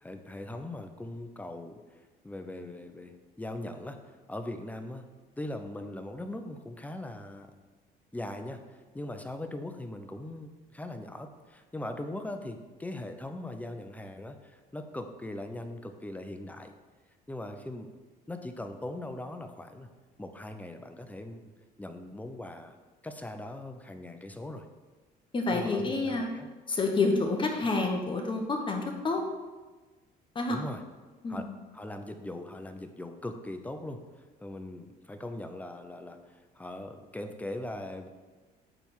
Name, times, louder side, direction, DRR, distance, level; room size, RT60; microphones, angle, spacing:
voice 1, 0.0-5.1 5.4-7.5 8.1-16.7 17.3-17.9 18.3-19.9 20.2-21.4 21.8-22.8 23.0-24.7 25.5-26.5 30.5-30.8 31.3-31.5 31.7-38.1, left 1 dB, 10° left, 7 dB, 0.7 m, -40 dB
voice 2, 25.3-26.3 26.7-29.2 30.3-30.6 31.2-31.5, left 3 dB, 30° left, 2 dB, 1.1 m, -28 dB
8.9 x 3.5 x 6.2 m, 1.3 s
cardioid pair, 110°, 17 cm